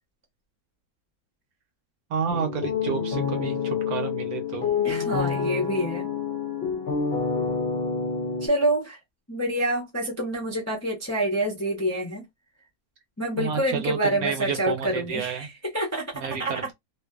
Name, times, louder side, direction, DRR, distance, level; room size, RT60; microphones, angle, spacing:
voice 1, 2.1-4.7 13.4-15.5 16.1-16.7, right 7 dB, 70° right, 1.1 m, -30 dB
sound 1, 2.3-8.5, left 6 dB, 60° left, 0.6 m, -28 dB
voice 2, 4.8-6.1 8.4-9.0 9.3-12.2 13.2-16.6, right 1 dB, 15° left, 0.5 m, -27 dB
2.5 x 2.4 x 2.3 m
omnidirectional pair, 1.7 m